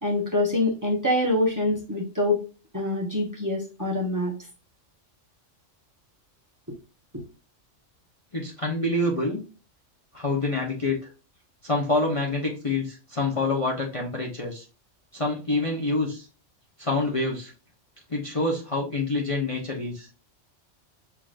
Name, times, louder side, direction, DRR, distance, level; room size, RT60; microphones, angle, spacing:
voice 1, 0.0-2.4 2.7-4.3, left 1 dB, 15° right, -1 dB, 1.2 m, -25 dB
voice 2, 8.3-9.4 10.1-11.0 11.6-14.6 15.1-16.3 16.8-17.5 18.1-20.1, left 2 dB, 30° left, -2 dB, 1.0 m, -26 dB
6.5 x 3.0 x 2.5 m, 0.33 s
omnidirectional pair, 1.3 m